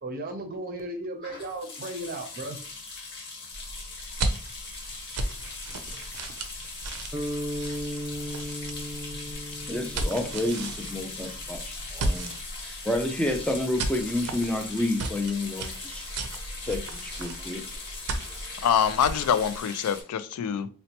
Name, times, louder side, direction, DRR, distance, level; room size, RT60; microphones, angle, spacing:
voice 1, 0.0-2.6, right 1 dB, 40° right, 0.6 m, -35 dB
sound 1, 1.2-20.0, left 3 dB, 50° left, 0.8 m, -40 dB
sound 2, 3.5-19.6, right 2 dB, 90° right, 0.5 m, -36 dB
sound 3, 7.1-11.4, equal, 15° right, 0.9 m, -36 dB
voice 2, 9.7-16.1 16.6-17.6, left 1 dB, 5° left, 0.4 m, -30 dB
voice 3, 18.6-20.7, left 8 dB, 85° left, 0.3 m, -25 dB
4.0 x 2.1 x 2.8 m
head